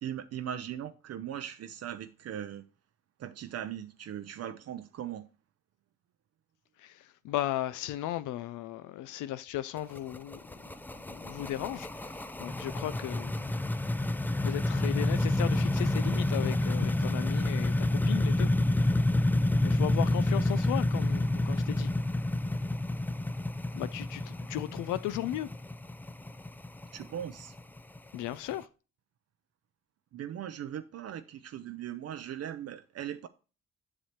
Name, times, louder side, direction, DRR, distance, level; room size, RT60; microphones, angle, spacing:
voice 1, 0.0-2.6 3.2-5.3 26.9-27.6 30.1-33.3, right 10 dB, 55° right, 0.5 m, -39 dB
voice 2, 6.8-10.4 11.1-13.6 14.4-18.5 18.8-18.9 19.6-21.9 23.7-25.5 28.1-28.7, left 13 dB, 80° left, 0.4 m, -36 dB
sound 1, 9.8-28.5, left 1 dB, 5° left, 0.4 m, -29 dB
7.4 x 6.6 x 2.9 m
cardioid pair, 90°, 30 cm